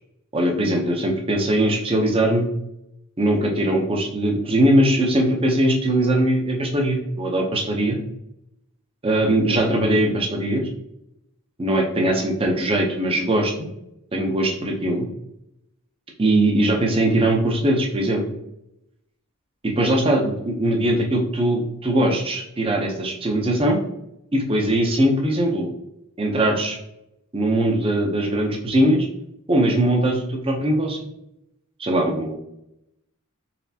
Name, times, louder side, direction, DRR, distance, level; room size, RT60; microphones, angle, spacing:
voice 1, 0.3-2.5 3.2-8.0 9.0-10.6 11.6-13.7 14.1-15.1 16.2-18.2 19.6-23.8 24.3-25.7 26.2-26.8 27.3-29.1 29.5-31.0 31.8-32.4, right 1 dB, 25° right, 1 dB, 0.6 m, -20 dB
4.1 x 3.1 x 2.8 m, 0.82 s
head